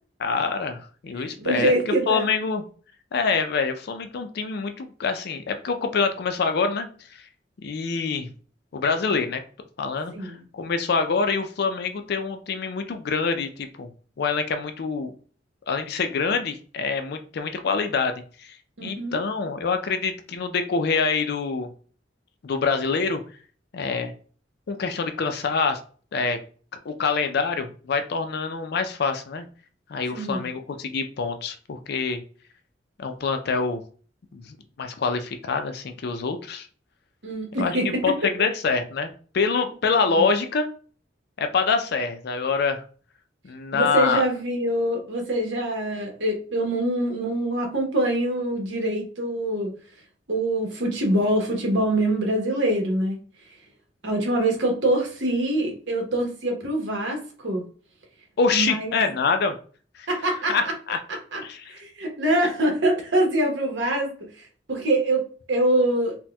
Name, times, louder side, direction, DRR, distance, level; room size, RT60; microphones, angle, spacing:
voice 1, 0.2-2.6 3.1-6.9 7.6-8.3 8.7-9.4 9.8-13.9 14.2-15.1 15.7-21.7 22.4-23.2 23.7-24.1 24.7-25.8 26.1-26.4 26.8-29.5 29.9-32.2 33.0-33.8 34.3-36.7 37.6-39.1 39.3-40.7 41.4-42.8 43.4-44.2 58.4-59.5 59.9-60.1 60.5-61.0 61.4-61.8, left 4 dB, 60° left, 7 dB, 0.4 m, -25 dB
voice 2, 1.2-2.3 10.1-10.4 18.8-19.2 30.1-30.4 37.2-38.0 40.2-40.3 43.7-49.7 50.3-53.2 54.0-57.6 58.5-59.1 60.1-60.7 61.3-61.4 61.7-64.1 64.7-66.2, right 1 dB, 80° right, 1 dB, 0.9 m, -24 dB
4.1 x 2.2 x 2.2 m, 0.42 s
head